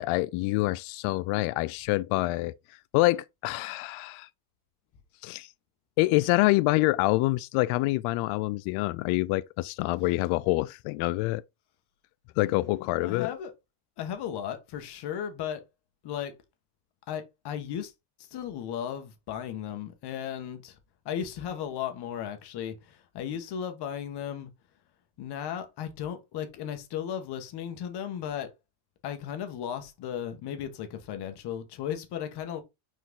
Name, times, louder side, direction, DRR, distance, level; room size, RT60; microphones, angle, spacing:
voice 1, 0.0-2.5 2.9-4.3 5.2-5.5 6.0-11.4 12.4-13.3, left 20 dB, 80° left, 0.6 m, -26 dB
voice 2, 12.4-13.5 14.0-15.6 16.0-16.3 17.1-17.9 18.2-20.8 21.0-24.5 25.2-28.5 29.0-32.6, left 9 dB, 50° left, 1.5 m, -35 dB
6.1 x 4.5 x 3.7 m
cardioid pair, 165°, 49 cm